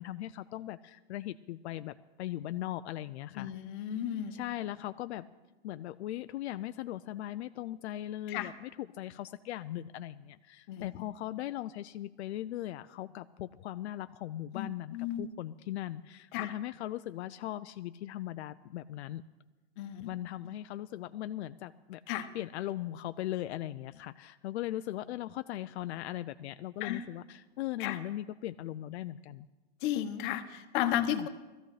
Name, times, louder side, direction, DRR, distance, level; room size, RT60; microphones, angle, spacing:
voice 1, 0.0-3.5 4.3-5.3 5.6-19.2 20.0-22.0 22.3-29.5 31.0-31.3, left 13 dB, 85° left, 11 dB, 0.5 m, -39 dB
voice 2, 3.4-4.4 8.3-8.5 10.7-10.9 14.5-15.3 16.3-16.5 19.8-20.1 22.1-22.3 26.8-27.0 27.8-28.0 29.8-31.3, left 11 dB, 50° left, 9 dB, 1.1 m, -34 dB
19.5 x 14.0 x 3.3 m, 1.2 s
supercardioid pair, 150°, 32 cm